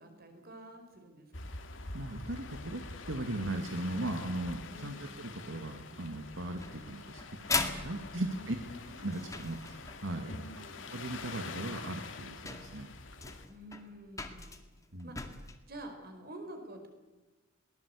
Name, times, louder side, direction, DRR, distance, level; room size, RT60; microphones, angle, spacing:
voice 1, 0.0-1.6 4.7-5.2 8.1-9.2 10.3-11.0 13.5-14.5 15.0-15.3 15.7-16.9, right 1 dB, 50° right, 6 dB, 4.7 m, -49 dB
sound 1, 1.3-13.5, left 3 dB, 70° left, 2.2 m, -46 dB
voice 2, 1.9-7.2 7.5-8.6 9.0-10.4 10.9-12.9 14.9-15.1, right 1 dB, 75° right, 5 dB, 2.0 m, -38 dB
sound 2, 6.6-10.2 11.5-11.6 12.2-12.3 12.5-15.6, left 3 dB, 15° left, 2.0 m, -39 dB
22.5 x 19.0 x 8.4 m, 1.2 s
head